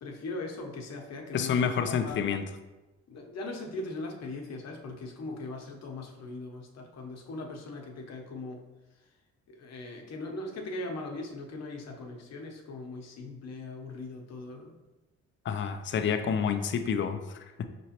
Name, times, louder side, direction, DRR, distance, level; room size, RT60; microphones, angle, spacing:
voice 1, 0.0-2.2 3.1-8.6 9.5-14.7, left 2 dB, 60° left, 1 dB, 0.9 m, -40 dB
voice 2, 1.3-2.4 15.4-17.6, left 7 dB, 40° left, 8 dB, 0.4 m, -29 dB
5.3 x 3.0 x 2.9 m, 1.1 s
cardioid pair, 90°, 30 cm